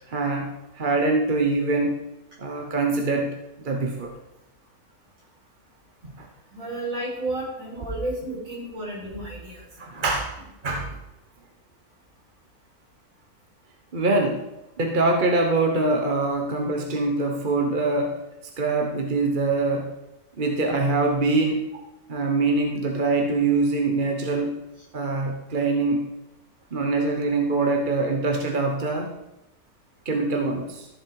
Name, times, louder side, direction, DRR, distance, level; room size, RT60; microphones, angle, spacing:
voice 1, 0.1-0.5 0.7-2.0 2.4-3.3 3.6-4.1 6.2-6.3 9.8-10.3 10.6-11.0 13.9-14.4 14.8-18.2 18.6-19.9 20.4-21.7 22.1-24.5 24.9-26.0 26.7-29.2 30.0-30.9, right 3 dB, 35° right, 2 dB, 1.2 m, -24 dB
voice 2, 6.5-9.7, right 1 dB, 65° right, -6 dB, 5.4 m, -32 dB
14.0 x 7.3 x 4.8 m, 0.92 s
omnidirectional pair, 1.5 m